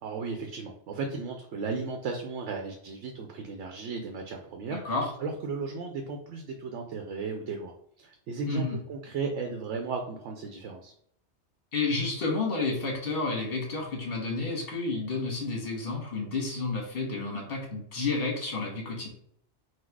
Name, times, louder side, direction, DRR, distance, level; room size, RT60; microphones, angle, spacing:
voice 1, 0.0-4.9 5.2-10.9, right 4 dB, 85° right, 3 dB, 0.9 m, -35 dB
voice 2, 4.7-5.1 8.5-8.8 11.7-19.1, left 3 dB, 55° left, 0 dB, 1.4 m, -30 dB
4.1 x 2.3 x 4.5 m, 0.66 s
omnidirectional pair, 1.2 m